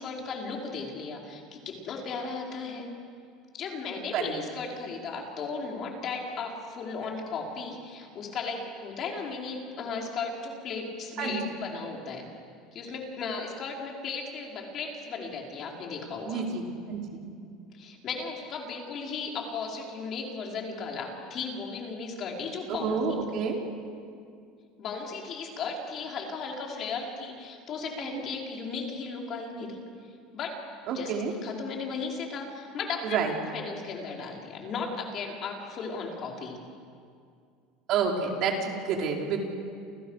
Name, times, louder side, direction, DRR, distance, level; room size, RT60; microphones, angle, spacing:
voice 1, 0.0-2.9 3.5-12.3 12.7-16.4 17.7-23.0 24.8-29.8 30.3-30.6 30.9-31.1 31.4-33.2 33.5-36.6, left 4 dB, 40° left, 0 dB, 5.1 m, -36 dB
voice 2, 11.2-11.6 16.2-16.6 16.9-17.2 22.7-23.6 30.9-31.3 33.0-33.3 37.9-39.4, right 5 dB, 50° right, 0 dB, 5.0 m, -29 dB
29.5 x 29.5 x 6.7 m, 2.3 s
supercardioid pair, 135°, 0 cm